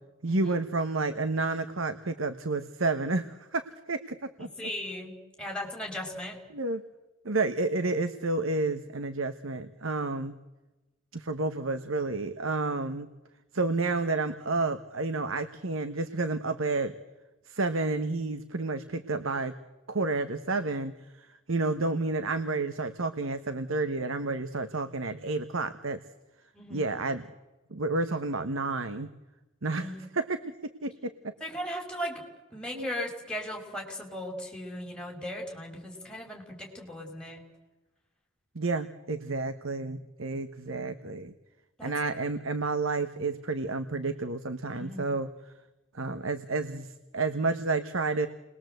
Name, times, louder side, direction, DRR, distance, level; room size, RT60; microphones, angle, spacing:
voice 1, 0.2-4.7 6.5-6.8 7.2-10.3 11.1-13.1 13.5-16.9 17.5-19.5 19.9-26.0 26.7-27.2 27.7-29.1 29.6-31.3 32.7-32.9 38.5-41.3 41.8-45.3 45.9-48.3, right 3 dB, 80° right, 10 dB, 1.3 m, -30 dB
voice 2, 4.4-6.4 26.5-26.9 29.8-30.0 31.4-32.2 32.5-37.4 41.8-41.9 44.7-45.1, left 1 dB, 5° left, 0 dB, 5.6 m, -37 dB
29.5 x 21.5 x 8.0 m, 1.1 s
head